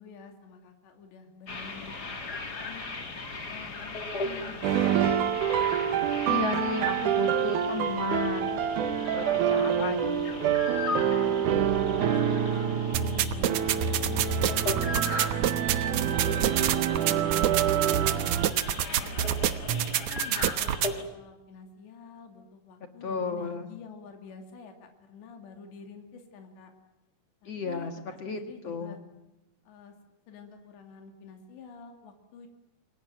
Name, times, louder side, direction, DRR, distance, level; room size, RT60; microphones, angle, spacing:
voice 1, 0.0-2.9 3.4-5.4 6.0-7.8 9.4-9.7 11.5-14.7 15.0-15.6 16.0-18.3 18.9-19.7 20.1-20.8 21.1-26.7 27.4-29.0 29.7-30.0 30.3-32.5, left 5 dB, 80° left, 4 dB, 4.8 m, -49 dB
sound 1, 1.5-21.0, left 3 dB, 25° left, 2.6 m, -38 dB
sound 2, 4.6-18.5, right 9 dB, 65° right, 2.2 m, -27 dB
voice 2, 6.3-8.6 9.1-10.6 23.0-23.7 27.4-29.0, left 5 dB, 50° left, 7 dB, 2.0 m, -34 dB
sound 3, 12.9-20.9, right 9 dB, 85° right, 1.6 m, -28 dB
28.5 x 21.5 x 9.3 m, 0.94 s
omnidirectional pair, 4.9 m